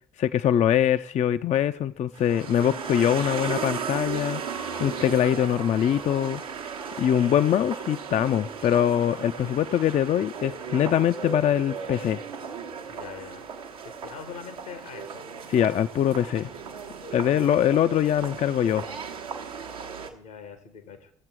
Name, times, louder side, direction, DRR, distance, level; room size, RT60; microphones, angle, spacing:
voice 1, 0.2-4.4 4.8-6.4 7.0-12.2 15.5-16.5 17.1-18.8, left 10 dB, 40° left, 12 dB, 0.4 m, -23 dB
sound 1, 2.1-20.1, right 6 dB, 85° right, 0.8 m, -36 dB
voice 2, 12.9-13.4 13.8-15.2 20.1-21.1, left 6 dB, 80° left, 9 dB, 1.4 m, -42 dB
15.5 x 7.3 x 4.7 m, 0.73 s
figure-of-eight pair, 45°, 18 cm